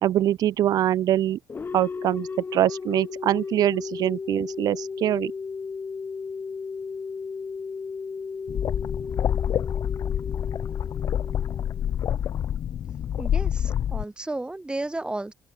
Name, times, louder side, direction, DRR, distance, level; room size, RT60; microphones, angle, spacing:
voice 1, 0.0-1.4 1.7-5.3, right 12 dB, 70° right, 1.0 m, -23 dB
sound 1, 1.5-12.2, left 5 dB, 30° left, 0.9 m, -35 dB
sound 2, 8.5-14.0, left 9 dB, 60° left, 1.1 m, -27 dB
voice 2, 13.2-15.3, right 2 dB, 15° right, 4.9 m, -33 dB
open air
cardioid pair, 90°, 7 cm